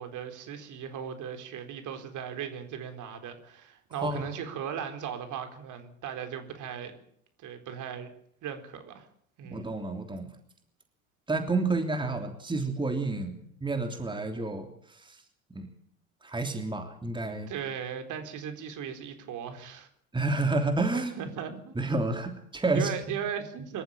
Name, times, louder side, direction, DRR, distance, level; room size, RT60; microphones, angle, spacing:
voice 1, 0.0-7.0 7.4-8.1 8.4-9.1 9.4-9.7 17.5-19.9 20.9-21.7 22.7-23.8, right 8 dB, 45° right, 7 dB, 4.2 m, -37 dB
voice 2, 9.5-10.3 11.3-15.2 15.5-15.7 16.2-17.5 20.1-21.2 21.7-22.9, right 3 dB, 10° right, 5 dB, 3.2 m, -30 dB
25.5 x 14.0 x 8.8 m, 0.66 s
figure-of-eight pair, 75°, 41 cm